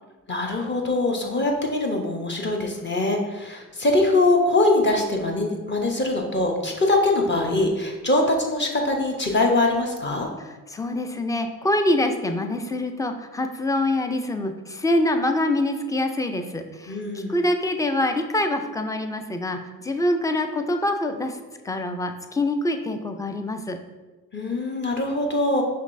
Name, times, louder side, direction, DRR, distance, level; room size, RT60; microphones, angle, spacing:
voice 1, 0.3-10.3 16.9-17.4 24.3-25.6, left 2 dB, 30° left, 1 dB, 0.8 m, -23 dB
voice 2, 10.7-21.4 21.6-23.8, left 1 dB, 10° left, 6 dB, 0.3 m, -25 dB
5.2 x 3.3 x 2.5 m, 1.2 s
supercardioid pair, 60°, 40 cm